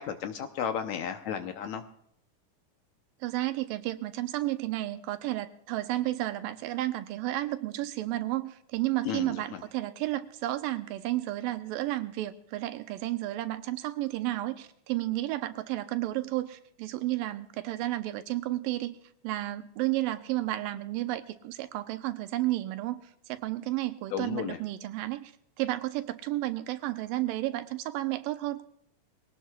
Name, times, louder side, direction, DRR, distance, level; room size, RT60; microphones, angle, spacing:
voice 1, 0.0-1.8 9.1-9.6 24.1-24.6, left 8 dB, 70° left, 6 dB, 1.9 m, -33 dB
voice 2, 3.2-18.9 19.2-23.0 23.3-25.3 25.6-28.7, right 16 dB, 90° right, 9 dB, 2.5 m, -32 dB
22.5 x 17.5 x 2.3 m, 0.72 s
omnidirectional pair, 3.9 m